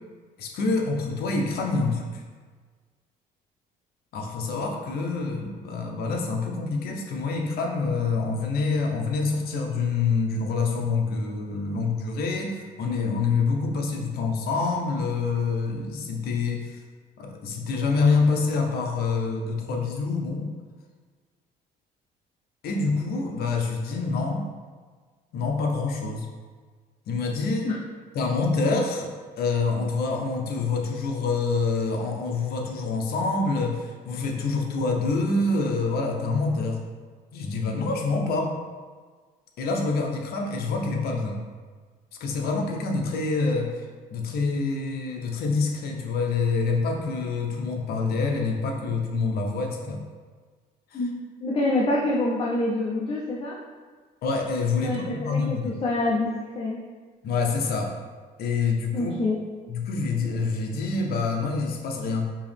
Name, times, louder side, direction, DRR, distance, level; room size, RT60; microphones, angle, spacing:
voice 1, 0.4-2.2 4.1-16.8 17.2-20.5 22.6-24.5 25.3-26.3 27.1-27.7 28.1-36.8 37.3-38.5 39.6-41.4 42.2-43.9 44.1-50.0 50.9-51.0 54.2-55.7 57.2-57.9 58.4-59.1 59.7-62.3, left 4 dB, 65° left, 2 dB, 0.8 m, -26 dB
voice 2, 51.4-53.5 54.8-56.8 58.9-59.4, left 2 dB, 35° left, -4 dB, 0.6 m, -26 dB
4.6 x 3.0 x 3.4 m, 1.5 s
cardioid pair, 110°, 17 cm